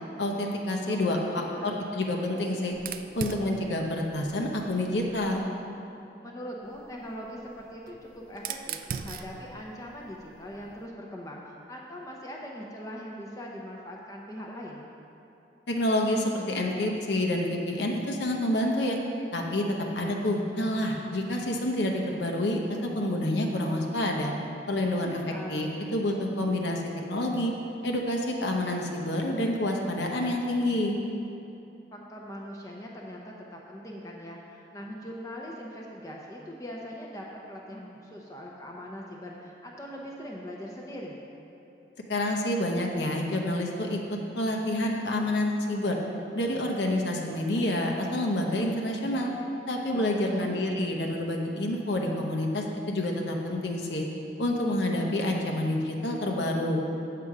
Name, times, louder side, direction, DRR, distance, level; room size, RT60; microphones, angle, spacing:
voice 1, 0.2-2.8 3.1-5.4 15.7-19.0 19.3-19.6 19.9-24.3 24.7-26.8 27.1-27.5 27.8-31.0 42.1-44.0 44.4-45.9 46.3-49.3 49.7-54.1 54.4-56.8, left 1 dB, 80° left, 0 dB, 0.8 m, -28 dB
voice 2, 0.9-1.8 6.2-14.9 25.1-25.5 31.9-41.1 49.9-50.5, equal, 20° left, -2 dB, 0.7 m, -41 dB
Fire, 2.7-5.5 6.6-10.9, right 6 dB, 50° right, 0.3 m, -41 dB
7.7 x 6.8 x 4.8 m, 2.9 s
head